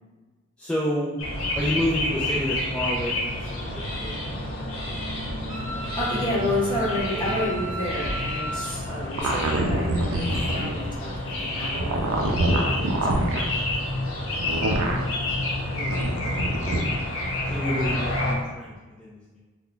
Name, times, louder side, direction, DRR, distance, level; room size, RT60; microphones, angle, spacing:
voice 1, 0.6-1.2 1.6-4.5 15.0-15.8 16.3-16.7 17.5-19.4, equal, 5° left, -7 dB, 0.4 m, -30 dB
sound 1, 1.2-18.3, left 1 dB, 65° left, 0.7 m, -29 dB
Wind instrument woodwind instrument, 5.5-8.7, equal, 35° right, 0.8 m, -36 dB
voice 2, 5.7-13.3 15.7-16.5, left 1 dB, 25° left, -5 dB, 0.9 m, -31 dB
sound 2, 9.2-10.8 11.7-13.4 14.4-15.0 15.8-16.8, right 1 dB, 85° right, 0.5 m, -25 dB
3.3 x 2.2 x 3.8 m, 1.3 s
head